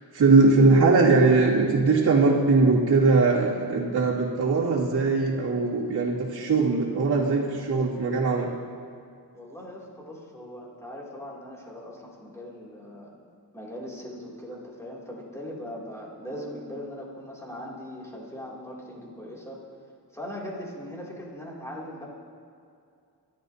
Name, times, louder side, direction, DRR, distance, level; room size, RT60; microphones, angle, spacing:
voice 1, 0.1-8.5, right 3 dB, 80° right, -7 dB, 2.5 m, -20 dB
voice 2, 9.3-13.1 13.5-19.6 20.1-22.1, equal, 10° left, -5 dB, 2.8 m, -40 dB
25.5 x 12.0 x 2.8 m, 2.4 s
wide cardioid pair, 150°, 38 cm